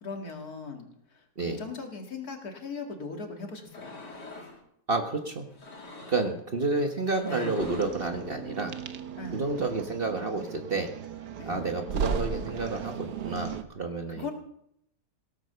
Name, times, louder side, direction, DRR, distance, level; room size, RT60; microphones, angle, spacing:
voice 1, 0.0-3.9 7.3-7.7 9.2-9.4 11.4-11.7 14.1-14.3, left 4 dB, 65° left, 3 dB, 2.7 m, -39 dB
sound 1, 3.6-4.6 5.5-6.4 7.0-8.0, left 2 dB, 80° left, 3.3 m, -45 dB
voice 2, 4.9-5.5 6.1-8.7 9.3-10.9 11.5-14.3, right 3 dB, 35° right, 5 dB, 1.3 m, -30 dB
sound 2, 7.6-13.6, right 7 dB, 75° right, 1.6 m, -36 dB
17.0 x 8.3 x 6.8 m, 0.72 s
omnidirectional pair, 1.8 m